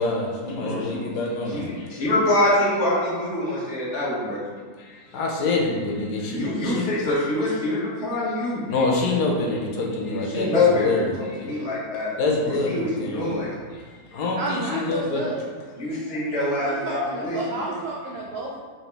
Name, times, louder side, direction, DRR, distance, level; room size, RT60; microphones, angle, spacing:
voice 1, 0.0-1.7 4.8-7.0 8.7-11.6 12.2-13.4 13.7-15.3 15.9-16.0, left 3 dB, 90° left, -1 dB, 1.3 m, -26 dB
voice 2, 1.9-4.4 6.3-8.6 10.3-11.0 11.4-12.1 12.7-12.9 13.1-13.5 15.8-17.7, left 2 dB, 50° left, -7 dB, 1.4 m, -24 dB
voice 3, 14.4-15.5 16.6-18.6, right 2 dB, 85° right, -3 dB, 0.5 m, -31 dB
4.1 x 2.8 x 3.3 m, 1.6 s
omnidirectional pair, 1.7 m